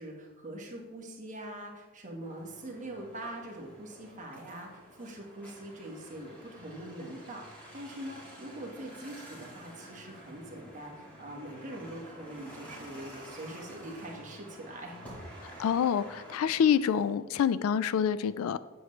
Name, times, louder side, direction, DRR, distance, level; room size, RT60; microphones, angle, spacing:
voice 1, 0.0-15.0, right 1 dB, 35° right, 0 dB, 1.5 m, -43 dB
sound 1, 2.2-17.1, right 1 dB, 5° left, 2.3 m, -50 dB
voice 2, 15.6-18.6, left 8 dB, 70° left, 16 dB, 0.3 m, -27 dB
8.0 x 7.8 x 3.2 m, 1.2 s
head